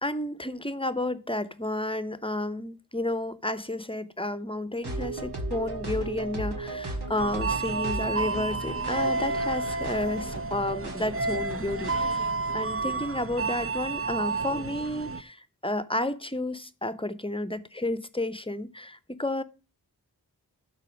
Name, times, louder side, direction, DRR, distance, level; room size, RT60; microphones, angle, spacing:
voice 1, 0.0-19.4, left 1 dB, 15° left, 0.8 m, -31 dB
sound 1, 4.8-12.1, right 2 dB, 75° right, 2.0 m, -36 dB
sound 2, 7.2-15.2, right 3 dB, 35° right, 0.7 m, -30 dB
12.0 x 4.2 x 6.0 m
wide cardioid pair, 40°, 40 cm